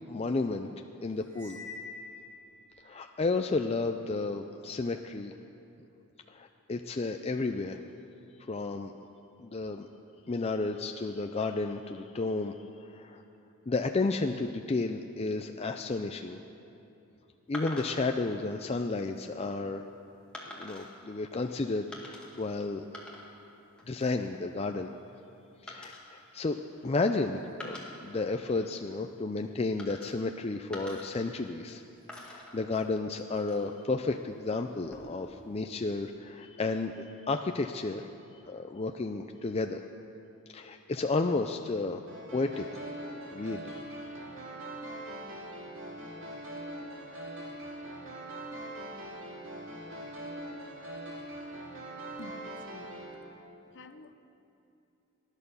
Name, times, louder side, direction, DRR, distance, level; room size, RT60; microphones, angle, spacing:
voice 1, 0.1-0.7 1.0-1.6 2.8-5.3 6.3-7.8 8.4-8.9 9.4-9.9 10.3-13.2 13.7-16.4 17.5-19.9 20.5-23.0 23.9-24.9 25.6-26.6 26.8-31.8 32.2-38.1 38.3-39.8 40.5-42.0 42.3-42.8 43.3-44.2, left 3 dB, 30° left, 5 dB, 0.4 m, -32 dB
Cymbal, 1.3-2.7, left 4 dB, 80° right, 3.2 m, -45 dB
sound 1, 17.5-18.2 18.9-19.2 20.3-20.9 21.9-22.5 22.8-23.5 23.8-24.2 25.7-27.1 27.5-28.8 29.8-30.4 30.7-31.8 32.1-33.8 34.7-35.3, left 1 dB, 5° left, 2.1 m, -46 dB
sound 2, 42.1-53.2, right 1 dB, 60° right, 2.7 m, -42 dB
voice 2, 52.2-53.1 53.7-54.1, left 2 dB, 55° left, 9 dB, 0.8 m, -50 dB
18.0 x 11.0 x 6.9 m, 2.8 s
head